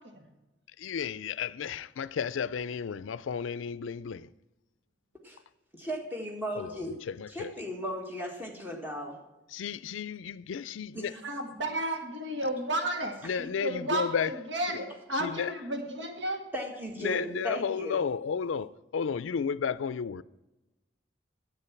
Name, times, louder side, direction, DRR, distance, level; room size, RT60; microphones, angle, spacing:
voice 1, 0.8-4.3 6.6-6.7 7.1-7.5 9.5-11.1 13.2-14.3 14.7-14.8 15.1-15.5 17.0-20.2, left 6 dB, 90° left, 0.4 m, -33 dB
voice 2, 5.7-7.0 7.3-9.2 10.9-11.4 16.5-18.0, equal, 10° right, 1.7 m, -36 dB
voice 3, 11.2-16.4, right 1 dB, 75° right, 1.9 m, -33 dB
9.9 x 8.3 x 5.8 m
head